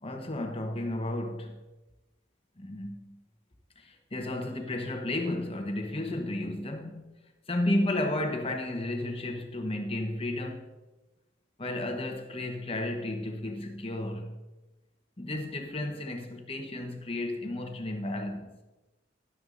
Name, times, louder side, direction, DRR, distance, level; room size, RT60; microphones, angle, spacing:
voice 1, 0.0-1.6 2.6-3.2 3.8-7.1 7.5-10.7 11.6-14.4 15.2-18.6, left 1 dB, 30° left, 1.0 m, -33 dB
12.0 x 9.4 x 2.6 m
head